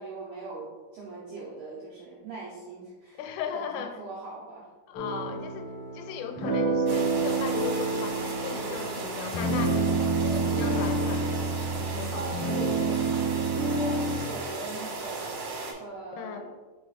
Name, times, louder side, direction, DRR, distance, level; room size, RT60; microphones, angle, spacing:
voice 1, 0.0-3.2 3.5-4.7 12.1-13.2 13.6-15.3 15.8-16.5, right 3 dB, 85° right, -6 dB, 2.2 m, -40 dB
voice 2, 3.2-4.0 4.9-12.3 16.1-16.5, left 7 dB, 90° left, 5 dB, 3.2 m, -37 dB
sound 1, 4.9-14.2, right 3 dB, 60° left, 2.1 m, -28 dB
sound 2, 6.9-15.7, right 3 dB, 70° right, 2.2 m, -36 dB
7.9 x 5.0 x 2.4 m, 1.3 s
omnidirectional pair, 5.8 m